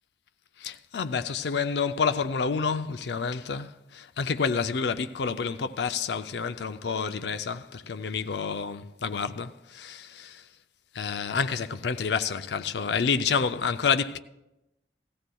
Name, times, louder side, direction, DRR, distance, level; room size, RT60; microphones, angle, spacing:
voice 1, 0.6-10.4 10.9-14.2, left 5 dB, 70° left, 0.5 m, -29 dB
17.5 x 14.0 x 2.3 m
head